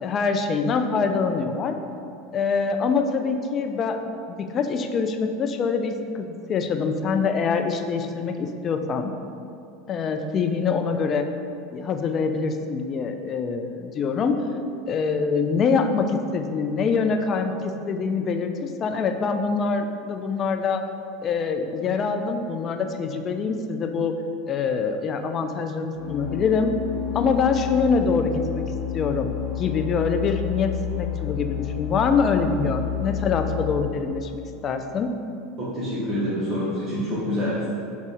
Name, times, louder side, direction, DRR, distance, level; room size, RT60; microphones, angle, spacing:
voice 1, 0.0-1.7 2.3-4.0 4.3-9.1 9.9-11.2 11.7-14.4 14.9-20.8 21.2-24.1 24.5-26.7 27.1-28.6 28.9-35.1, left 5 dB, 40° left, 6 dB, 0.4 m, -24 dB
sound 1, 25.9-33.8, left 10 dB, 85° left, 0.6 m, -30 dB
voice 2, 35.6-37.7, equal, 40° right, -10 dB, 1.1 m, -26 dB
4.9 x 2.4 x 4.2 m, 2.7 s
hypercardioid pair, 90°, 0 cm